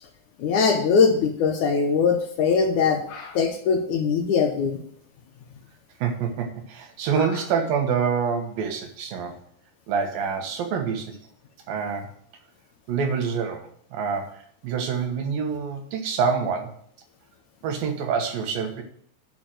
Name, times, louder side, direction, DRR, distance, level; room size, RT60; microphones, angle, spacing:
voice 1, 0.4-4.8, left 5 dB, 70° left, 4 dB, 2.1 m, -21 dB
voice 2, 6.0-9.4 9.9-11.2 11.7-12.1 12.9-16.8 17.6-18.8, right 6 dB, 75° right, 4 dB, 3.0 m, -26 dB
11.0 x 4.6 x 7.7 m, 0.62 s
omnidirectional pair, 4.2 m